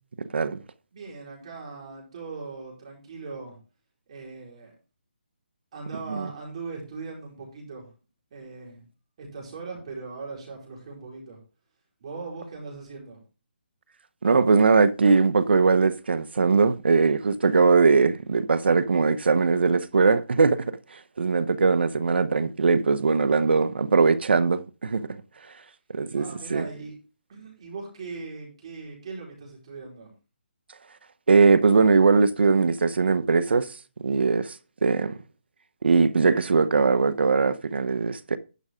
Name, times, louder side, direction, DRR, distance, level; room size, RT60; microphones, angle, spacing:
voice 1, 0.9-3.6 4.1-4.7 5.7-7.9 8.3-8.8 9.2-11.4 12.0-13.2 26.1-26.9 27.3-30.1, right 4 dB, 35° right, 4.5 m, -39 dB
voice 2, 14.2-20.6 21.2-25.2 25.9-26.2 26.5-26.6 31.3-33.7 34.0-34.5 34.8-35.1 35.8-38.4, right 4 dB, 70° right, 0.9 m, -20 dB
11.0 x 6.2 x 3.6 m
hypercardioid pair, 170°, 6 cm